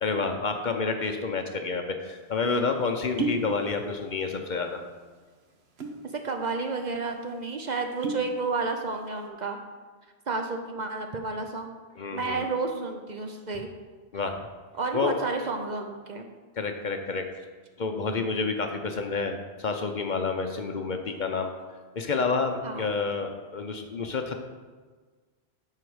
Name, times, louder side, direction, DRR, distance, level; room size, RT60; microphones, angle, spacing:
voice 1, 0.0-4.8 12.0-12.5 14.1-14.4 14.9-15.2 16.6-17.3 17.8-21.5 22.0-24.4, left 4 dB, 50° left, 5 dB, 0.7 m, -29 dB
sound 1, 2.1-2.2 3.0-3.5 3.8-4.4 4.7-4.9 5.6-6.1 6.5-6.6 6.9-7.1 7.8-8.3 8.8-9.1, right 3 dB, 75° right, 1.2 m, -32 dB
voice 2, 6.1-9.6 10.3-11.8 12.1-13.7 14.8-16.2 22.6-22.9, right 3 dB, 50° right, 4 dB, 0.7 m, -31 dB
8.1 x 4.7 x 6.2 m, 1.5 s
omnidirectional pair, 1.1 m